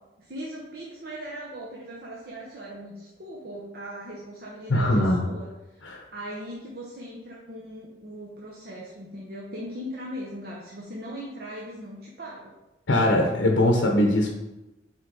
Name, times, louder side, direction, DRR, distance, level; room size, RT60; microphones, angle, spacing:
voice 1, 0.2-5.8 6.1-12.5, equal, 55° right, -4 dB, 0.9 m, -39 dB
voice 2, 4.7-5.3 5.8-6.0 12.9-14.3, left 1 dB, 90° left, 0 dB, 0.8 m, -21 dB
6.0 x 4.6 x 3.8 m, 1.0 s
head